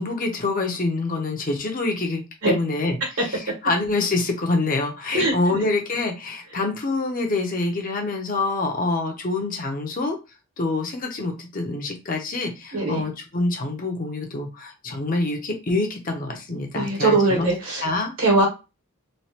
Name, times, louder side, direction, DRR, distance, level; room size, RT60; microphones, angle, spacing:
voice 1, 0.0-10.2 10.6-17.5 17.8-18.1, left 2 dB, 40° left, 3 dB, 0.7 m, -26 dB
voice 2, 5.1-5.6 12.7-13.0 16.7-17.8 18.2-18.5, right 2 dB, 70° right, 0 dB, 1.4 m, -21 dB
3.1 x 2.4 x 2.8 m, 0.27 s
head